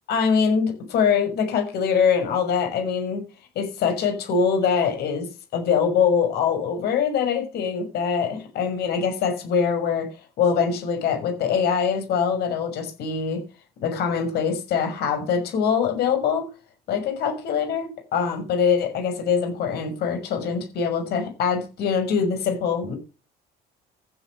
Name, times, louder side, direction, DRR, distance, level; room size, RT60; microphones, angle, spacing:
voice 1, 0.1-3.2 3.5-5.3 5.5-10.1 10.4-13.4 13.8-16.5 16.9-23.0, left 6 dB, 70° left, 5 dB, 6.2 m, -23 dB
15.0 x 8.6 x 6.6 m, 0.33 s
cardioid pair, 110°, 17 cm